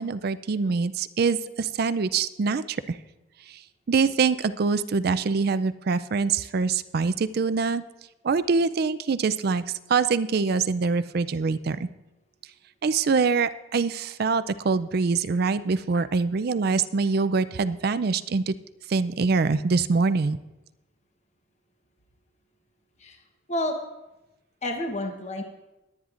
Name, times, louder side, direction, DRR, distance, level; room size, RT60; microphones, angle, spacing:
voice 1, 0.0-3.0 3.5-3.6 3.9-7.8 8.2-9.6 9.9-11.9 12.8-18.5 18.9-20.4, right 4 dB, 50° right, 14 dB, 0.4 m, -24 dB
voice 2, 24.6-25.4, left 1 dB, 35° left, 3 dB, 1.0 m, -29 dB
20.5 x 9.5 x 2.5 m, 0.98 s
head